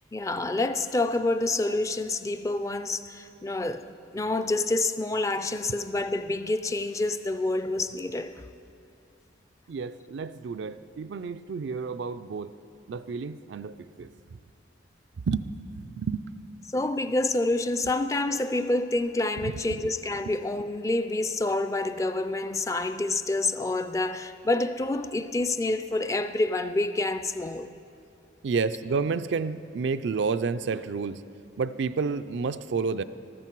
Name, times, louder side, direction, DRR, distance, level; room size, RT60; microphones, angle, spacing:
voice 1, 0.1-3.8 4.1-8.5 16.7-27.7, left 2 dB, 15° left, 0.3 m, -28 dB
voice 2, 9.7-12.5 12.9-14.1 15.3-16.4 19.4-19.8 20.2-20.3 28.4-31.2 31.6-33.0, right 5 dB, 70° right, 0.4 m, -30 dB
14.0 x 13.0 x 4.6 m
head